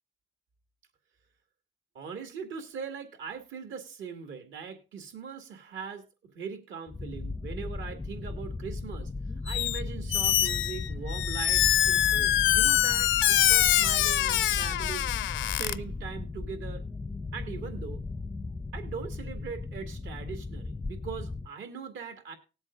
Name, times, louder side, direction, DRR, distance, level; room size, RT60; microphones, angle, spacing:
voice 1, 1.9-6.0 6.3-9.1 9.4-15.1 15.4-16.8 17.3-18.0 18.7-22.3, right 6 dB, 75° right, 6 dB, 2.2 m, -41 dB
sound 1, 6.9-21.5, left 3 dB, 10° left, 0.4 m, -36 dB
Squeak, 9.5-9.8 10.1-15.7, left 13 dB, 75° left, 0.5 m, -24 dB
19.5 x 8.0 x 2.5 m, 0.31 s
cardioid pair, 90°, 20 cm